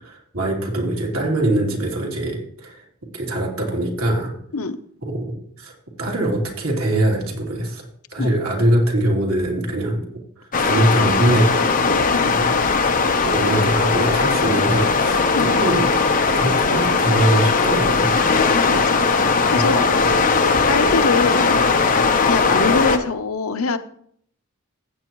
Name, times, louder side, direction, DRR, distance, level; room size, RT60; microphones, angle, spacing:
voice 1, 0.0-2.8 3.1-4.3 5.0-5.7 6.0-11.7 12.3-12.5 13.2-16.1 16.3-18.1, right 1 dB, 80° right, -1 dB, 3.1 m, -22 dB
sound 1, 10.5-23.0, left 4 dB, 40° left, 0.9 m, -18 dB
voice 2, 18.5-20.2 20.7-21.6 22.2-23.8, left 4 dB, 80° left, 9 dB, 0.7 m, -24 dB
15.0 x 8.6 x 3.1 m, 0.64 s
head